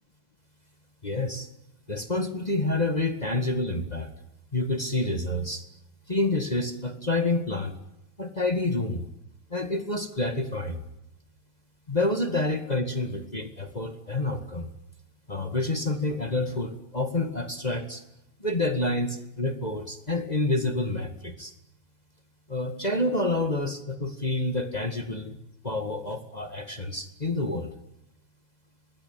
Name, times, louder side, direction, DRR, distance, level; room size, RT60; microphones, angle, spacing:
voice 1, 1.0-1.5 1.9-4.1 4.5-5.6 6.1-7.7 8.2-9.0 9.5-10.7 11.9-14.7 15.3-18.0 18.4-21.5 22.5-25.4 25.6-27.7, left 2 dB, 20° left, 7 dB, 1.9 m, -28 dB
25.5 x 20.0 x 9.2 m, 0.86 s
omnidirectional pair, 2.4 m